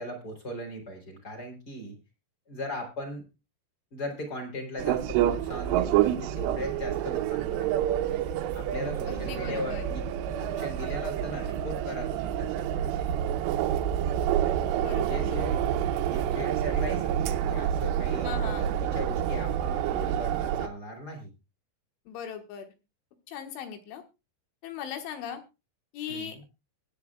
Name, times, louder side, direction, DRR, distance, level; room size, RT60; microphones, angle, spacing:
voice 1, 0.0-2.0 2.5-3.2 3.9-8.2 8.5-10.0 10.4-13.1 14.8-15.7 16.1-18.3 18.8-21.3 26.1-26.4, left 1 dB, 25° left, 3 dB, 3.1 m, -38 dB
sound 1, 4.8-20.7, right 10 dB, 80° right, 2.6 m, -28 dB
voice 2, 9.1-9.9 14.8-15.7 18.2-18.8 22.1-22.7 23.3-24.0 24.6-25.4 25.9-26.5, left 8 dB, 80° left, 6 dB, 3.8 m, -39 dB
23.0 x 9.0 x 2.3 m, 0.27 s
omnidirectional pair, 5.5 m